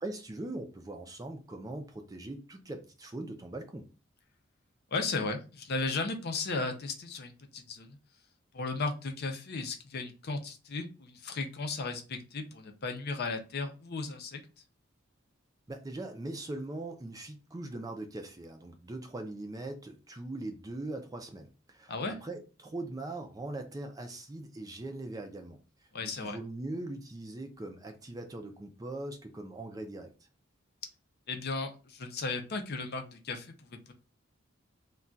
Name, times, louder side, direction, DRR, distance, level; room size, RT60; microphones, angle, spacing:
voice 1, 0.0-3.8 15.7-22.0 22.2-25.6 26.0-30.1, right 2 dB, 20° right, 0.4 m, -41 dB
voice 2, 4.9-8.0 8.5-14.4 21.9-22.2 25.9-26.4 31.3-33.9, left 3 dB, 55° left, 0.5 m, -35 dB
2.3 x 2.3 x 3.8 m
head